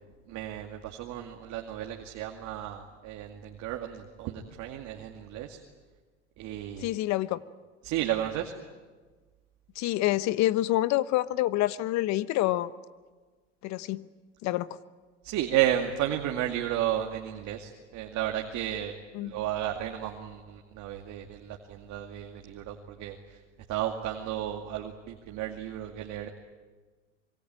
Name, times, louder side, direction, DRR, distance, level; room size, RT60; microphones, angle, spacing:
voice 1, 0.3-5.6 6.4-6.9 7.8-8.5 15.2-18.9 19.2-23.2 23.7-26.3, right 12 dB, 50° right, 2 dB, 2.3 m, -33 dB
voice 2, 6.8-7.4 9.8-12.7 13.6-14.0 14.4-14.8 19.1-19.4, left 15 dB, 50° left, 16 dB, 1.1 m, -27 dB
26.0 x 23.0 x 9.0 m, 1.4 s
hypercardioid pair, 90°, 36 cm